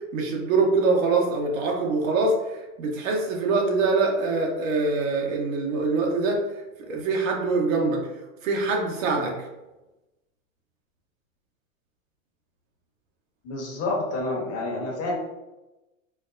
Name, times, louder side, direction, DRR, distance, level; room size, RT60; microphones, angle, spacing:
voice 1, 0.1-6.4 6.8-8.1 8.4-9.4, right 3 dB, 75° right, 1 dB, 0.9 m, -24 dB
voice 2, 13.4-15.2, left 2 dB, 35° left, -1 dB, 1.0 m, -28 dB
4.4 x 2.0 x 2.5 m, 1.0 s
hypercardioid pair, 105°, 41 cm